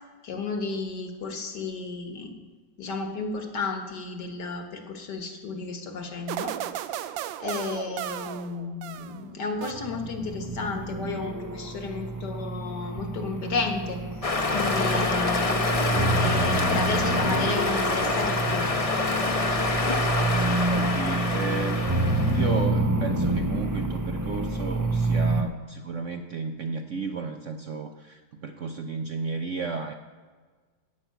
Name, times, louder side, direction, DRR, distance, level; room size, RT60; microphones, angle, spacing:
voice 1, 0.2-2.3 2.8-6.6 7.0-7.1 7.4-14.0 14.5-18.7, left 4 dB, 65° left, 4 dB, 2.1 m, -33 dB
sound 1, 6.3-9.2 9.6-10.3, right 11 dB, 85° right, 1.3 m, -35 dB
sound 2, 9.7-25.4, right 2 dB, 30° right, 0.3 m, -28 dB
sound 3, 14.2-22.6, left 3 dB, 30° left, 0.7 m, -26 dB
voice 2, 20.3-29.9, right 4 dB, 60° right, 6 dB, 0.8 m, -33 dB
15.0 x 5.9 x 9.0 m, 1.5 s
omnidirectional pair, 2.0 m